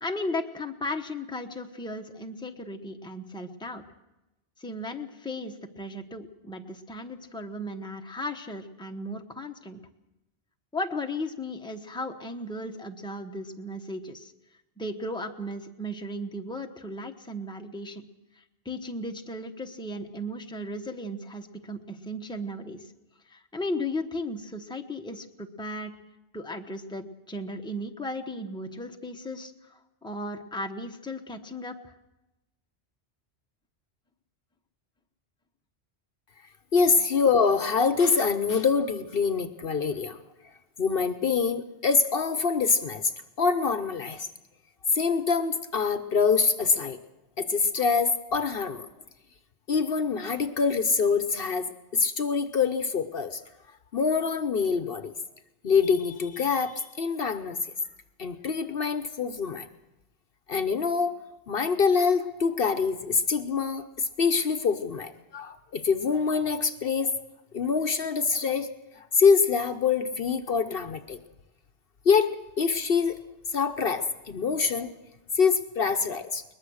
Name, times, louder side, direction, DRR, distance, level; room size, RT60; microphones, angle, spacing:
voice 1, 0.0-3.8 4.6-9.8 10.7-14.3 14.8-18.0 18.4-22.8 23.3-25.9 26.3-31.9, left 1 dB, 5° left, 4 dB, 1.0 m, -36 dB
voice 2, 36.7-40.2 40.8-43.1 43.4-44.3 44.9-47.0 47.4-48.9 49.7-53.4 53.9-55.1 55.6-57.6 58.2-59.7 60.5-61.2 61.5-67.1 67.5-68.7 69.0-71.2 72.0-73.2 73.5-74.9 75.3-76.4, left 5 dB, 60° left, 8 dB, 1.0 m, -25 dB
22.0 x 20.0 x 6.4 m, 0.98 s
omnidirectional pair, 1.1 m